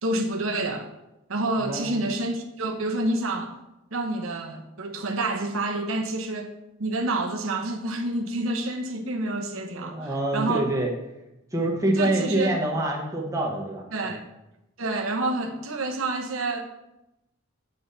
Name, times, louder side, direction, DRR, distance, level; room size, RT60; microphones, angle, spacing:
voice 1, 0.0-0.9 1.3-3.5 3.9-6.5 6.8-10.7 12.0-12.6 13.9-14.2 14.8-16.6, right 2 dB, 90° right, 3 dB, 0.9 m, -28 dB
voice 2, 1.6-1.9 9.7-10.9 11.5-14.2, right 1 dB, 15° right, 0 dB, 1.1 m, -26 dB
7.9 x 5.6 x 4.1 m, 0.92 s
head